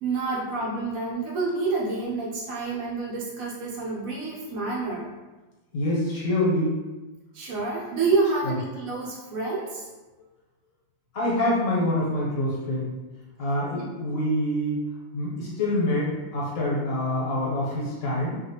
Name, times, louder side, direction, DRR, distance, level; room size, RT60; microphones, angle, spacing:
voice 1, 0.0-5.1 7.3-9.9 13.7-13.9, right 3 dB, 80° right, -4 dB, 1.2 m, -28 dB
voice 2, 5.7-6.7 8.4-8.6 11.1-12.9 13.4-14.8 15.1-18.4, left 1 dB, 70° left, -5 dB, 1.2 m, -26 dB
2.7 x 2.5 x 2.8 m, 1.2 s
omnidirectional pair, 1.4 m